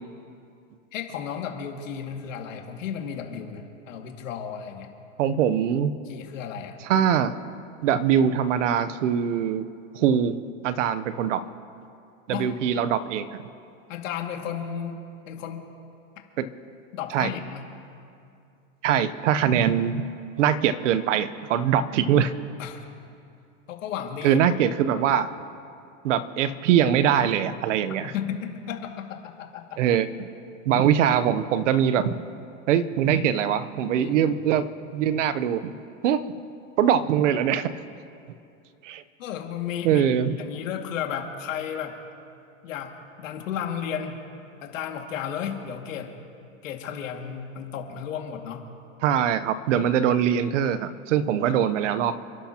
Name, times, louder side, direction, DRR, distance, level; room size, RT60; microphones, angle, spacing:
voice 1, 0.9-4.9 6.1-6.8 12.3-12.5 13.9-15.7 16.9-17.6 22.6-22.9 23.7-24.5 28.0-29.8 34.0-34.4 39.2-42.0 42.6-42.9 43.2-44.2 44.6-46.1 46.6-48.6, left 8 dB, 75° left, 2 dB, 2.3 m, -33 dB
voice 2, 5.2-5.9 6.8-7.4 7.8-9.6 9.9-10.4 10.6-11.4 12.3-13.4 16.4-16.5 17.1-17.3 18.8-20.1 20.4-22.3 24.2-25.3 26.0-28.1 29.8-30.3 30.7-32.2 32.7-34.7 34.9-35.7 36.0-36.2 36.8-37.7 38.8-39.0 39.8-40.4 49.0-52.2, right 9 dB, 65° right, 12 dB, 0.9 m, -22 dB
29.5 x 11.5 x 2.9 m, 2.5 s
supercardioid pair, 155°, 39 cm